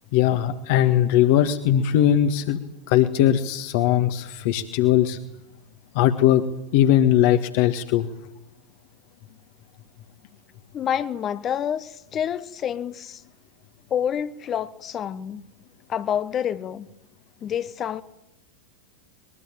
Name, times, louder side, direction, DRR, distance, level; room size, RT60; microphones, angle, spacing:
voice 1, 0.1-2.6 2.9-5.2 5.9-6.4 6.7-8.1, left 11 dB, 50° left, 1.8 m, -19 dB
voice 2, 10.7-13.2 13.9-15.4 15.9-16.9 17.4-18.0, left 9 dB, 30° left, 1.2 m, -28 dB
24.0 x 22.0 x 9.1 m
figure-of-eight pair, 90°, 0 cm